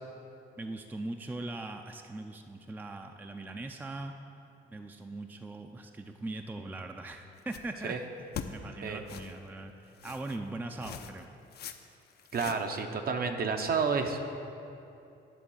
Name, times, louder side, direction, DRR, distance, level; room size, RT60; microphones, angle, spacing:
voice 1, 0.6-4.1 4.7-8.0 8.5-11.3, right 2 dB, 10° right, 5 dB, 0.4 m, -40 dB
sound 1, 7.4-7.8 8.3-8.5 9.1-9.3 10.0-10.4 10.8-11.2 11.5-11.8 12.1-12.8, left 8 dB, 55° left, 0.5 m, -42 dB
voice 2, 12.3-14.3, right 5 dB, 50° right, 5 dB, 0.8 m, -30 dB
10.0 x 3.9 x 7.1 m, 2.8 s
cardioid pair, 90°, 20 cm